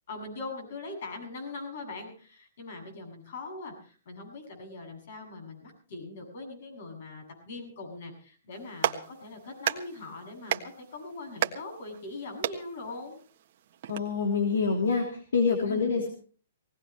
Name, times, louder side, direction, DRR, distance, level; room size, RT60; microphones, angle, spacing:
voice 1, 0.1-13.2 15.6-16.0, left 3 dB, 60° left, 3 dB, 7.9 m, -41 dB
Clapping, 8.5-14.0, right 10 dB, 50° right, 1.4 m, -35 dB
voice 2, 13.9-16.1, left 5 dB, 90° left, 2 dB, 3.3 m, -26 dB
19.5 x 18.0 x 3.2 m, 0.40 s
hypercardioid pair, 150°, 0 cm